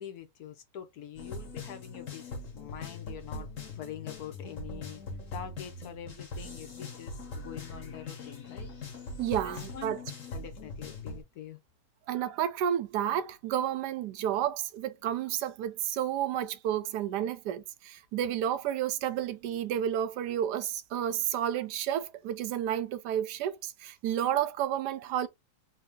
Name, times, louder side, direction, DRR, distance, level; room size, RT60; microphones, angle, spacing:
voice 1, 0.0-3.5 3.7-5.0 5.3-8.7 9.3-10.0 10.3-11.6, left 9 dB, 70° left, 1.3 m, -45 dB
sound 1, 1.1-11.2, left 3 dB, 55° left, 1.5 m, -41 dB
voice 2, 9.2-10.0 12.1-25.3, right 10 dB, 80° right, 1.2 m, -31 dB
3.3 x 2.7 x 3.5 m
omnidirectional pair, 1.8 m